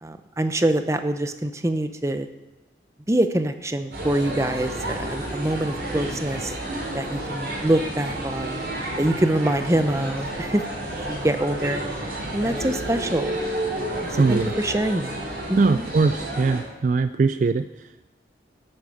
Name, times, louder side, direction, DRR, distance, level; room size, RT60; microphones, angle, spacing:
voice 1, 0.0-2.3 3.1-6.5 6.9-8.6 9.0-10.6 11.1-13.4 14.1-15.9, right 1 dB, 15° right, 8 dB, 0.7 m, -25 dB
sound 1, 3.9-16.6, right 1 dB, 60° right, 4.9 m, -31 dB
voice 2, 14.2-14.5 15.6-18.1, right 4 dB, 45° right, 12 dB, 0.3 m, -22 dB
11.5 x 8.3 x 6.9 m, 1.1 s
head